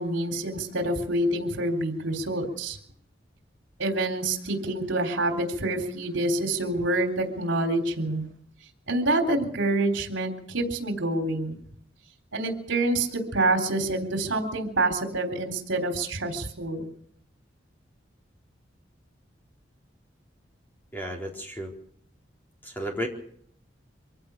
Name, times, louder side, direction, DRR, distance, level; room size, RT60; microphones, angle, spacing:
voice 1, 0.0-2.8 3.8-8.2 8.9-11.6 12.3-16.9, right 2 dB, 75° right, 4 dB, 3.6 m, -27 dB
voice 2, 20.9-21.7 22.6-23.1, equal, 10° left, 0 dB, 4.0 m, -33 dB
24.5 x 15.5 x 7.1 m, 0.63 s
head